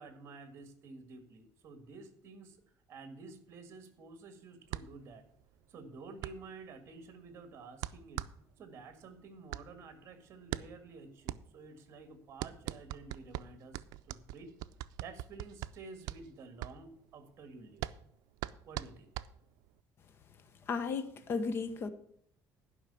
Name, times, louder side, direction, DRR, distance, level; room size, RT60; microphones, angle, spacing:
voice 1, 0.0-2.6 2.9-5.2 5.7-8.2 8.6-14.5 15.0-17.9 18.6-19.1, right 4 dB, 45° right, 1.8 m, -51 dB
sound 1, 4.7-19.8, right 14 dB, 90° right, 0.4 m, -43 dB
voice 2, 20.7-21.9, left 4 dB, 40° left, 0.9 m, -34 dB
11.0 x 5.6 x 8.4 m
cardioid pair, 160°, 6 cm